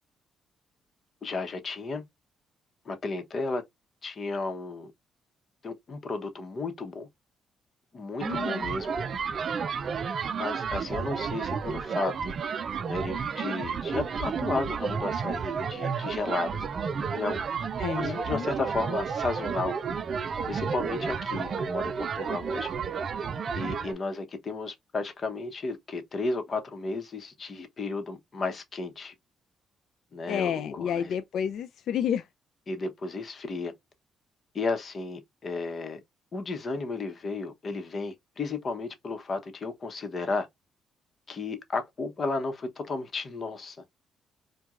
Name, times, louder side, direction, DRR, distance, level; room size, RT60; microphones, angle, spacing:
voice 1, 1.2-2.0 2.8-3.6 4.0-4.9 5.6-7.1 7.9-9.0 10.3-12.4 12.9-16.6 17.1-17.4 18.0-19.7 20.2-22.7 23.5-29.1 30.1-31.1 32.7-33.7 34.5-36.0 36.3-40.5 41.3-43.8, left 3 dB, 40° left, 0.9 m, -33 dB
voice 2, 8.2-8.7 17.8-18.5 30.3-32.3, left 8 dB, 70° left, 0.3 m, -30 dB
sound 1, 8.2-23.9, right 6 dB, 50° right, 0.4 m, -31 dB
4.5 x 2.2 x 2.4 m
cardioid pair, 90°, 0 cm